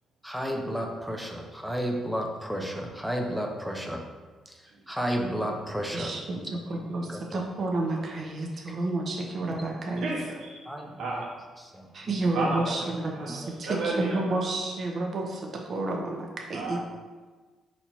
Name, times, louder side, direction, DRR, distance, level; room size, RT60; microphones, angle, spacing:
voice 1, 0.2-4.0 4.5-6.5 7.1-7.4 10.7-11.2 11.7-12.2 12.6-12.7 13.4-13.5, equal, ahead, 1 dB, 0.5 m, -32 dB
voice 2, 5.9-10.1 11.9-15.4 15.7-16.8, right 2 dB, 45° right, 0 dB, 0.7 m, -30 dB
voice 3, 10.0-10.7 11.0-11.3 12.3-14.5 16.5-16.8, right 2 dB, 80° right, -3 dB, 1.1 m, -33 dB
4.2 x 2.8 x 4.3 m, 1.3 s
cardioid pair, 90°, 0 cm